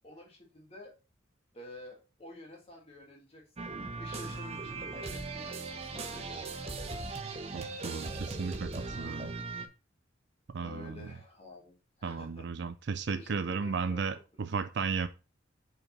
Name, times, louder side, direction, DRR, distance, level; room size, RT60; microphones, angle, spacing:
voice 1, 0.0-0.9 1.5-3.7 4.0-6.7 10.6-12.5 13.1-14.2 14.5-14.6, left 2 dB, 30° left, 1.8 m, -50 dB
sound 1, 3.6-9.7, right 3 dB, 30° right, 0.9 m, -39 dB
voice 2, 7.5-8.7 9.0-9.3 10.5-11.1 12.0-15.1, right 5 dB, 55° right, 0.4 m, -34 dB
5.2 x 4.7 x 5.9 m
head